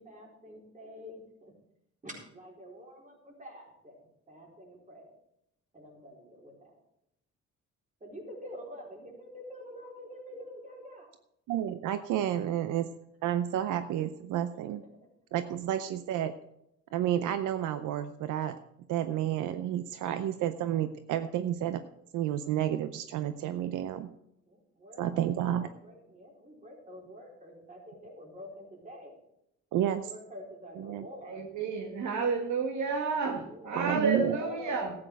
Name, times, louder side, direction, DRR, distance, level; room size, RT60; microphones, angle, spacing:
voice 1, 0.0-1.5 2.0-5.2 5.7-6.7 8.0-11.1 12.5-12.6 14.6-14.7 15.0-15.1 15.8-16.2 24.2-29.1 29.8-31.4 33.3-34.9, equal, 25° right, -1 dB, 4.2 m, -47 dB
voice 2, 11.5-12.8 13.2-14.8 15.3-16.3 16.9-18.6 18.9-21.8 22.1-24.1 25.0-25.7 29.7-30.0 30.8-31.0 33.8-34.4, right 11 dB, 85° right, 11 dB, 0.6 m, -30 dB
voice 3, 31.3-34.9, right 4 dB, 70° right, 3 dB, 1.8 m, -31 dB
13.0 x 8.8 x 4.6 m, 0.80 s
cardioid pair, 90°, 30 cm